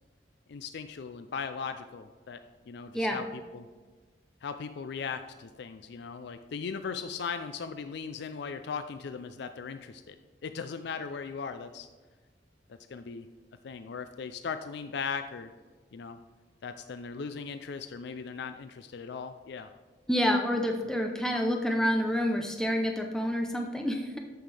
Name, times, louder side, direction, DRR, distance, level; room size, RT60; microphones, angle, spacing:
voice 1, 0.5-2.4 2.7-3.7 4.4-10.2 10.4-11.9 12.9-13.3 13.6-15.5 15.9-16.2 16.6-19.7, left 5 dB, 65° left, 9 dB, 0.4 m, -38 dB
voice 2, 20.1-24.2, equal, 5° left, 2 dB, 0.7 m, -28 dB
13.5 x 5.7 x 3.4 m, 1.4 s
head